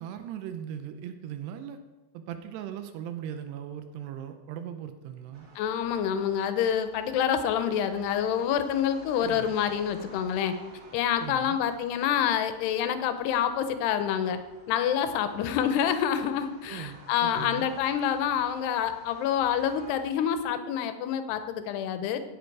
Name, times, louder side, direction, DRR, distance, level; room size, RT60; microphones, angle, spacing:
voice 1, 0.0-1.8 2.1-5.5 9.2-9.5 11.2-11.6 16.7-17.7, right 9 dB, 85° right, 8 dB, 2.9 m, -39 dB
sound 1, 5.3-20.0, right 2 dB, 60° right, 3.8 m, -52 dB
voice 2, 5.6-10.5 10.9-14.4 14.7-22.2, left 9 dB, 80° left, 9 dB, 2.9 m, -27 dB
16.5 x 7.8 x 4.7 m, 1.1 s
omnidirectional pair, 4.7 m